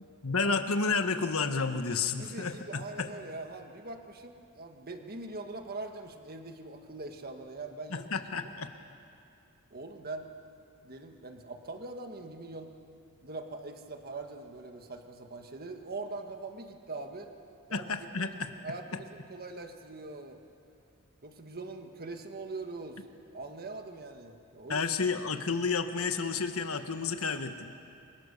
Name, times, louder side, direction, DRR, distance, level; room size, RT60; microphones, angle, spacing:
voice 1, 0.2-3.1 7.9-8.7 17.7-18.5 24.7-27.7, left 4 dB, 75° left, 7 dB, 1.5 m, -31 dB
voice 2, 2.2-8.1 8.4-8.5 9.7-10.3 10.8-12.7 13.2-17.3 17.7-17.9 18.2-20.4 21.2-23.0 23.3-24.9, right 3 dB, 45° right, 5 dB, 1.6 m, -42 dB
29.0 x 23.0 x 6.7 m, 2.5 s
head